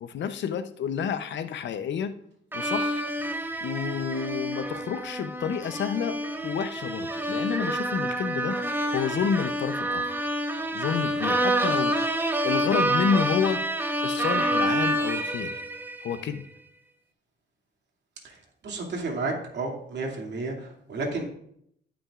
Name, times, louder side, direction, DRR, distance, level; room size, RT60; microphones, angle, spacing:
voice 1, 0.0-2.1 2.5-3.1 3.6-8.6 8.9-10.2 10.7-12.1 12.4-13.6 14.0-15.6 16.0-16.4, left 7 dB, 65° left, 11 dB, 0.7 m, -29 dB
sound 1, 2.5-16.2, right 1 dB, 10° right, 0.9 m, -28 dB
voice 2, 18.6-21.2, right 3 dB, 60° right, 0 dB, 2.5 m, -32 dB
18.0 x 6.1 x 2.5 m, 0.70 s
cardioid pair, 90°, 20 cm